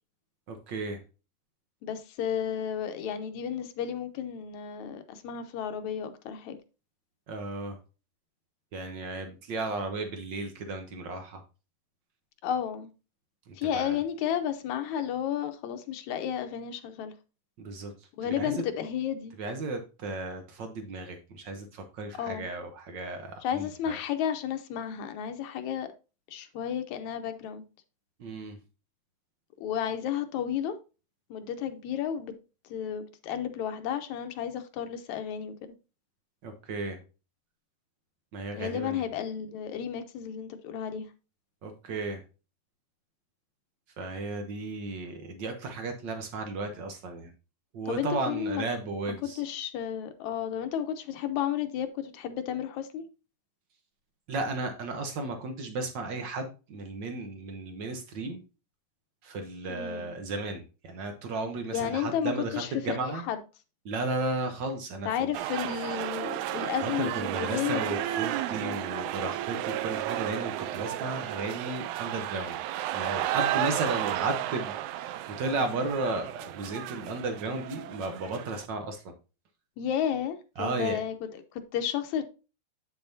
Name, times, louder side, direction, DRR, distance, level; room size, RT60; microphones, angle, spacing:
voice 1, 0.5-1.0 7.3-7.8 8.7-11.4 13.5-14.0 17.6-17.9 18.4-18.6 19.4-24.0 28.2-28.6 36.4-37.0 38.3-39.0 41.6-42.2 44.0-47.3 47.7-49.4 54.3-58.4 59.2-63.2 63.8-65.3 66.8-72.6 72.9-79.1 80.6-81.0, right 3 dB, 70° right, 1.1 m, -34 dB
voice 2, 1.8-6.6 12.4-12.9 13.6-17.1 18.2-19.4 22.2-22.5 23.4-25.9 26.3-27.6 29.6-30.8 31.3-32.3 32.7-35.5 38.5-41.1 47.9-48.7 49.1-53.1 59.7-60.1 61.7-63.4 65.1-68.0 68.6-68.9 79.8-82.2, left 9 dB, 80° left, 2.1 m, -32 dB
sound 1, 65.3-78.7, right 13 dB, 85° right, 2.0 m, -33 dB
8.4 x 6.9 x 2.7 m
omnidirectional pair, 3.3 m